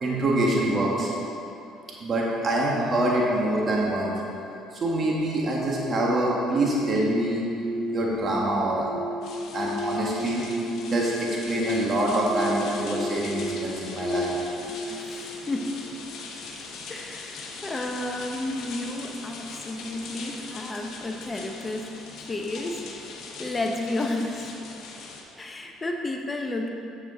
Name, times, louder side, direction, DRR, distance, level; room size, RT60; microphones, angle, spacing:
voice 1, 0.0-1.1 2.0-4.1 4.7-7.4 7.9-8.9 9.5-10.4 10.8-14.3, right 1 dB, 40° right, -3 dB, 1.6 m, -25 dB
sound 1, 5.4-16.5, left 1 dB, 45° left, 1.5 m, -34 dB
sound 2, 9.2-25.2, left 4 dB, 65° left, 1.1 m, -41 dB
voice 2, 14.9-15.8 16.9-24.6 25.4-26.7, left 2 dB, 25° left, 3 dB, 0.8 m, -32 dB
7.8 x 7.0 x 3.9 m, 2.8 s
supercardioid pair, 75°, 0 cm